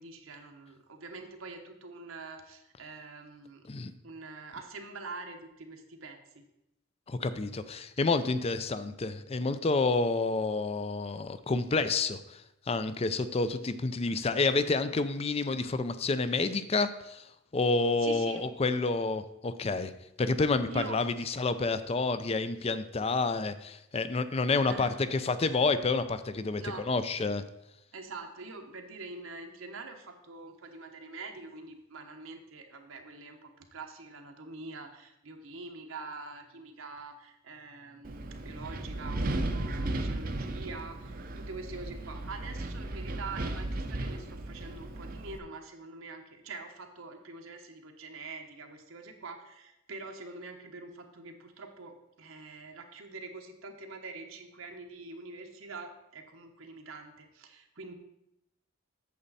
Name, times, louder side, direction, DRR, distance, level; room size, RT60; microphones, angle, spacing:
voice 1, 0.0-3.7 4.0-6.5 18.0-18.5 20.7-21.2 24.7-25.0 26.5-26.9 27.9-57.9, right 3 dB, 85° right, 4 dB, 1.2 m, -45 dB
voice 2, 7.1-17.3 17.5-19.9 20.2-27.4, left 3 dB, 30° left, 12 dB, 0.4 m, -29 dB
Wind, 38.0-45.4, right 2 dB, 45° right, 0.6 m, -35 dB
8.4 x 7.2 x 4.1 m, 0.85 s
head